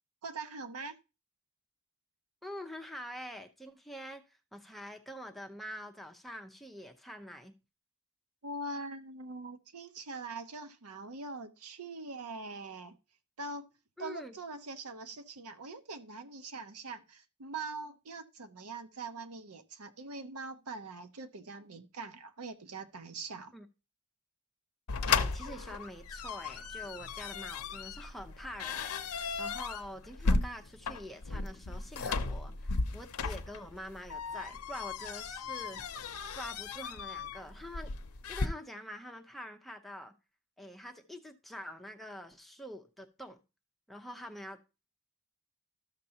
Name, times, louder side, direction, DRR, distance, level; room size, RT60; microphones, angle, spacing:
voice 1, 0.2-1.0 8.4-13.0 13.4-13.7 14.0-23.5, right 3 dB, 85° right, 0.8 m, -43 dB
voice 2, 2.4-7.5 14.0-14.3 23.5-23.7 25.1-37.9 38.3-40.1 40.6-43.4 43.9-44.6, equal, ahead, 0.7 m, -46 dB
sound 1, 24.9-38.5, left 4 dB, 80° left, 0.7 m, -35 dB
13.0 x 6.7 x 2.8 m
head